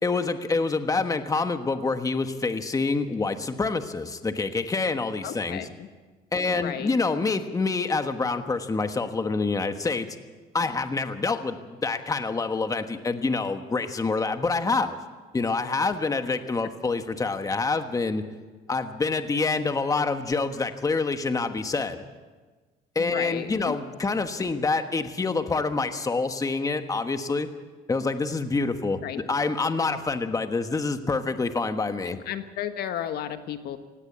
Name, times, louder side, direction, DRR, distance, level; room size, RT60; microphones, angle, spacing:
voice 1, 0.0-5.6 6.3-10.1 10.5-15.0 15.3-18.2 18.7-22.0 22.9-27.5 27.9-32.2, left 3 dB, 20° left, 8 dB, 1.3 m, -27 dB
voice 2, 5.2-5.9 6.4-6.9 23.0-23.8 29.0-29.2 32.1-33.8, left 10 dB, 70° left, 9 dB, 1.4 m, -33 dB
17.5 x 17.5 x 8.6 m, 1.3 s
cardioid pair, 110°, 17 cm